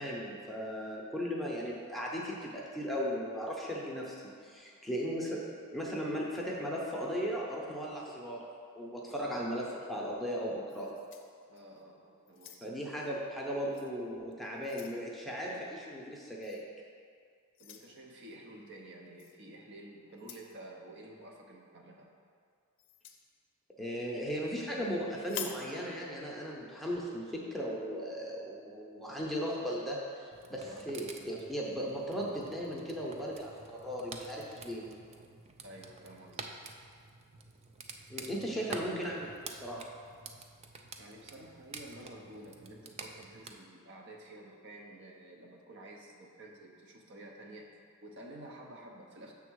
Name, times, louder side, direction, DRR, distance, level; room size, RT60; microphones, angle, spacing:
voice 1, 0.0-4.2 4.4-5.4 5.7-8.4 8.7-10.9 12.6-16.6 23.8-34.9 38.1-39.8, equal, ahead, -4 dB, 0.7 m, -37 dB
sound 1, 10.7-11.8 12.3-12.9 13.7-13.9 14.3-15.0 16.4-16.6 17.5-17.9 19.2-19.4 20.1-20.5 22.8-23.2 25.2-25.7, left 9 dB, 55° left, 0.5 m, -46 dB
voice 2, 11.5-12.7 17.6-22.1 30.6-30.8 35.6-36.7 38.4-38.8 41.0-47.7 48.0-49.3, right 1 dB, 55° right, 0 dB, 0.8 m, -51 dB
sound 2, 30.3-43.5, right 4 dB, 30° right, 0.4 m, -49 dB
6.9 x 3.6 x 6.2 m, 2.2 s
head